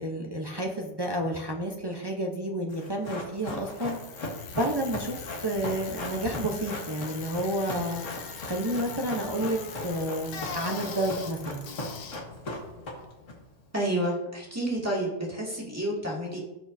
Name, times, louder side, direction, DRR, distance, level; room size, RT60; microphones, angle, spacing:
voice 1, 0.0-4.0 4.5-8.0 8.4-9.6 9.8-11.7, right 1 dB, 30° right, 0 dB, 0.5 m, -30 dB
Run, 2.7-13.3 13.6-13.7, left 2 dB, 45° left, 2.0 m, -38 dB
Bicycle, 3.4-13.5, left 6 dB, 85° left, 1.6 m, -41 dB
voice 2, 13.7-16.4, right 1 dB, 10° right, -4 dB, 2.2 m, -29 dB
17.0 x 6.3 x 2.7 m, 1.0 s
omnidirectional pair, 1.9 m